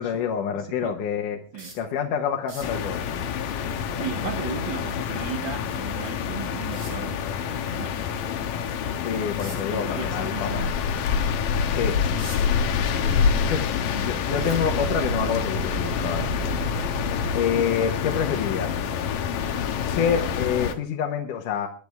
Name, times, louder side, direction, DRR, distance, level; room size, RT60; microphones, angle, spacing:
voice 1, 0.0-1.4 1.8-3.0 9.0-10.6 11.7-12.0 13.5-13.6 14.0-16.3 17.3-18.7 19.8-21.7, left 7 dB, 70° left, 2 dB, 2.8 m, -27 dB
voice 2, 0.5-0.9 1.5-1.7 3.8-8.0 9.7-10.9 12.9-14.2 14.8-15.0 16.2-16.5, right 7 dB, 80° right, 5 dB, 1.0 m, -37 dB
sound 1, 1.6-1.9 2.4-2.8 5.6-5.7 6.7-7.1 9.4-9.7 10.2-10.4 10.9-11.0 11.8-12.6 13.1-13.8 14.4-15.1 16.0-16.2 16.6-16.7, right 2 dB, 40° right, 5.2 m, -42 dB
sound 2, 2.6-20.8, left 7 dB, 85° left, 2.8 m, -27 dB
sound 3, 12.5-12.6 13.0-13.5 13.8-17.8, right 3 dB, 60° right, 1.0 m, -33 dB
22.0 x 11.5 x 3.5 m, 0.38 s
omnidirectional pair, 3.9 m